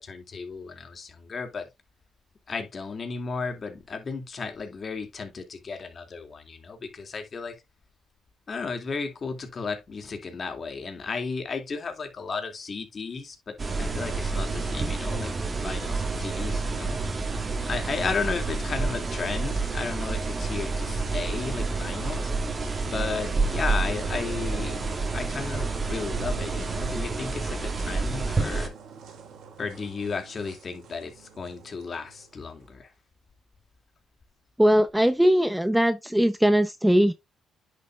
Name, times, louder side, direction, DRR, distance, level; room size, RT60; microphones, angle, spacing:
voice 1, 0.0-1.7 2.5-7.6 8.5-17.1 17.7-22.3 22.8-24.8 25.1-28.7 29.6-32.9, left 4 dB, 40° left, 2.5 m, -34 dB
sound 1, 13.6-28.7, right 3 dB, 30° right, 2.2 m, -29 dB
sound 2, 19.4-32.7, right 5 dB, 75° right, 3.3 m, -46 dB
voice 2, 34.6-37.1, equal, 5° right, 0.7 m, -20 dB
10.0 x 6.3 x 2.4 m
cardioid pair, 90°, 0 cm